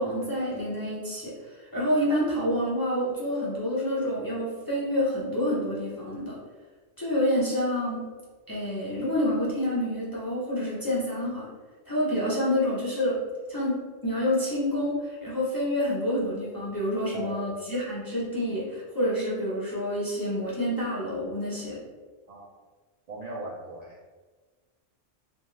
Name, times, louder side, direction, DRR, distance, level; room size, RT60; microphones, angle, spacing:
voice 1, 0.0-6.4 7.0-8.1 8.5-11.5 11.8-13.2 13.5-21.8, left 1 dB, 25° left, -8 dB, 0.6 m, -28 dB
voice 2, 17.1-17.6 22.3-22.5 23.1-23.9, right 2 dB, 65° right, -5 dB, 0.4 m, -38 dB
2.6 x 2.4 x 3.0 m, 1.3 s
omnidirectional pair, 1.2 m